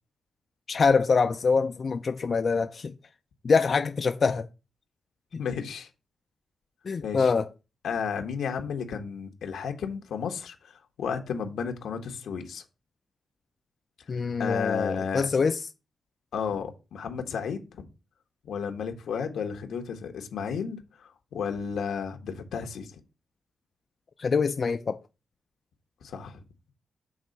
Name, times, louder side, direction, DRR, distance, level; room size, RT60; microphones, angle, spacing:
voice 1, 0.7-2.9 3.4-4.5 5.3-5.4 6.8-7.5 14.1-15.6 24.2-25.0, left 5 dB, 45° left, 0.4 m, -24 dB
voice 2, 5.4-5.9 7.0-7.3 7.8-12.6 14.4-15.3 16.3-17.8 18.4-23.0 26.0-26.4, left 6 dB, 85° left, 1.2 m, -33 dB
6.3 x 3.7 x 5.3 m
wide cardioid pair, 130°, 0 cm